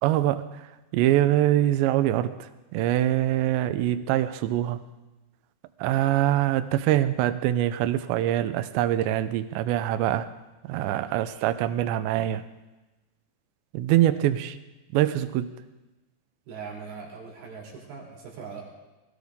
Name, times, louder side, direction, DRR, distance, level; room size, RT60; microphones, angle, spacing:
voice 1, 0.0-4.8 5.8-10.3 10.6-12.4 13.7-14.6 14.9-15.5, right 13 dB, 80° right, 11 dB, 2.6 m, -24 dB
voice 2, 10.7-11.0 14.0-14.1 16.5-18.6, right 5 dB, 60° right, -2 dB, 4.8 m, -41 dB
21.5 x 17.0 x 3.7 m, 1.1 s
omnidirectional pair, 5.8 m